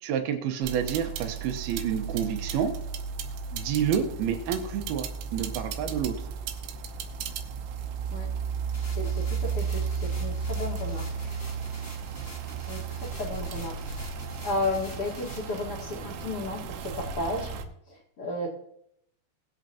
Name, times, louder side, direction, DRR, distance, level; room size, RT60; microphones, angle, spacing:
voice 1, 0.0-2.7 3.5-6.3, right 8 dB, 75° right, 6 dB, 2.8 m, -29 dB
sound 1, 0.6-17.7, right 6 dB, 90° right, 3.1 m, -34 dB
sound 2, 8.7-15.6, left 1 dB, 5° left, 1.6 m, -48 dB
voice 2, 8.9-11.3 12.7-13.8 14.4-17.5 17.9-18.5, left 2 dB, 45° left, -3 dB, 2.1 m, -33 dB
19.5 x 8.1 x 2.9 m, 0.73 s
omnidirectional pair, 4.8 m